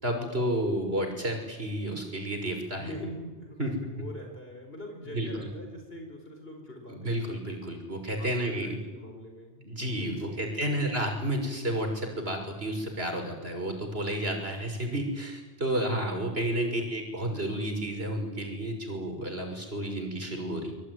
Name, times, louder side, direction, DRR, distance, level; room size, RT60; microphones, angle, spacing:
voice 1, 0.0-2.9 3.6-3.7 5.1-5.3 6.9-8.8 9.6-20.7, right 1 dB, 70° right, 4 dB, 6.4 m, -31 dB
voice 2, 2.7-7.2 8.1-9.6 10.0-10.5, left 1 dB, 65° left, 3 dB, 5.0 m, -43 dB
25.5 x 24.5 x 9.7 m, 1.2 s
omnidirectional pair, 1.1 m